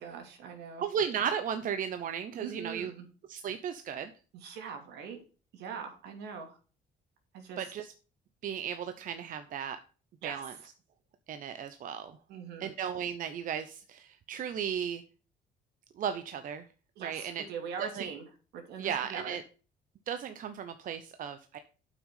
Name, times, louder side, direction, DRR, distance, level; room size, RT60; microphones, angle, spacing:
voice 1, 0.0-0.9 2.3-3.1 4.3-5.2 5.5-6.6 7.3-7.7 10.2-10.7 12.3-12.7 17.0-19.4, right 6 dB, 80° right, 5 dB, 2.7 m, -42 dB
voice 2, 0.8-2.9 3.3-4.1 7.6-7.9 8.4-9.8 10.2-10.5 11.3-12.2 12.6-15.0 16.0-16.6 17.0-17.4 17.8-18.1 18.8-19.4 20.1-21.6, right 8 dB, 55° right, 10 dB, 0.8 m, -35 dB
7.9 x 6.1 x 5.6 m, 0.36 s
cardioid pair, 110°, 17 cm